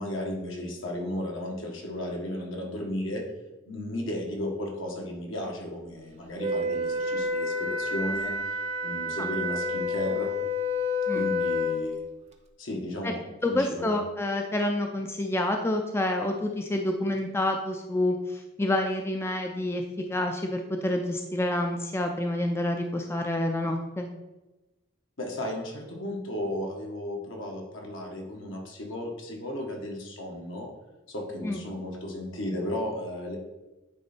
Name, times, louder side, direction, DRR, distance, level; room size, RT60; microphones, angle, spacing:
voice 1, 0.0-3.2 3.7-8.3 8.8-10.3 11.1-12.0 12.6-14.0 25.2-30.7 31.1-33.4, left 1 dB, 75° left, 0 dB, 1.5 m, -34 dB
Wind instrument woodwind instrument, 6.4-11.9, left 2 dB, 35° right, 0.6 m, -29 dB
voice 2, 13.4-24.1 31.4-31.6, left 1 dB, 10° left, 3 dB, 0.4 m, -28 dB
9.4 x 3.3 x 4.3 m, 1.1 s
head